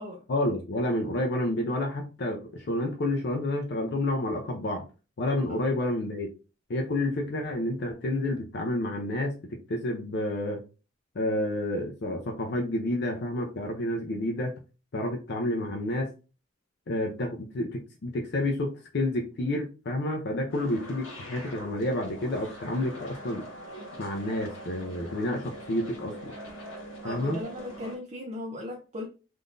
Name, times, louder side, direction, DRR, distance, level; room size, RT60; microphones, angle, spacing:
voice 1, 0.3-4.8 5.2-6.3 6.7-10.6 11.2-14.5 14.9-16.1 16.9-23.5 24.0-26.3 27.0-27.4, left 1 dB, 55° left, 0.5 m, -29 dB
sound 1, 20.5-28.0, equal, 80° left, 1.4 m, -43 dB
voice 2, 27.0-29.1, left 1 dB, 35° right, 0.4 m, -38 dB
3.6 x 2.5 x 2.4 m
head